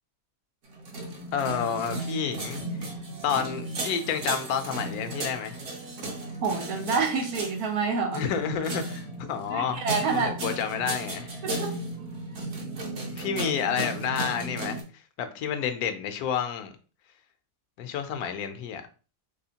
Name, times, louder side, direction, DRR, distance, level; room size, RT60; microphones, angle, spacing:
sound 1, 0.7-14.8, right 2 dB, 60° right, 1.2 m, -35 dB
voice 1, 1.3-2.6 3.2-5.6 8.1-9.8 10.1-11.4 13.1-16.7 17.8-18.8, left 7 dB, 80° left, 8 dB, 1.1 m, -30 dB
voice 2, 6.4-8.3 9.5-10.3 11.4-11.7, right 4 dB, 90° right, 3 dB, 1.4 m, -27 dB
3.4 x 3.0 x 2.8 m, 0.36 s
omnidirectional pair, 1.6 m